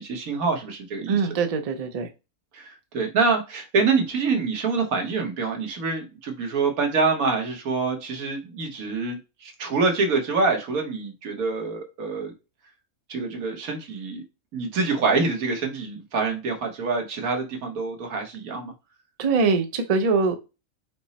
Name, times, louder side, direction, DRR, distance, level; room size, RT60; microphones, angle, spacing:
voice 1, 0.0-1.2 2.5-12.3 13.1-14.2 14.5-18.7, right 4 dB, 85° right, 1.5 m, -26 dB
voice 2, 1.1-2.1 19.2-20.3, right 4 dB, 60° right, 0.4 m, -22 dB
5.2 x 2.0 x 4.0 m
omnidirectional pair, 1.5 m